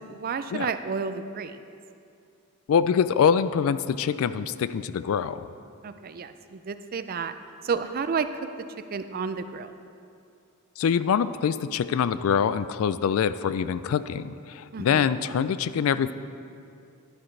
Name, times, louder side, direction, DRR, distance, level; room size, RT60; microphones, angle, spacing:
voice 1, 0.0-1.6 5.8-7.3 7.6-8.3 8.9-9.7 14.7-15.1, right 5 dB, 45° right, 10 dB, 0.4 m, -31 dB
voice 2, 2.7-5.4 10.8-16.1, left 7 dB, 70° left, 14 dB, 0.3 m, -24 dB
11.0 x 10.0 x 3.2 m, 2.5 s
head